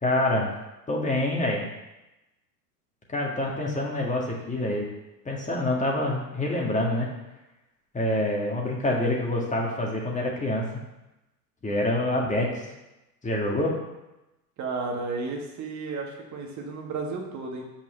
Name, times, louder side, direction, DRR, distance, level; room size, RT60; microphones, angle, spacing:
voice 1, 0.0-0.5 0.9-1.7 3.1-4.9 5.3-7.1 7.9-10.6 11.6-12.7 13.2-13.7, left 1 dB, 15° left, -2 dB, 1.8 m, -26 dB
voice 2, 14.6-17.6, right 3 dB, 35° right, 0 dB, 1.6 m, -33 dB
5.9 x 5.4 x 6.5 m, 0.98 s
hypercardioid pair, 90°, 50 cm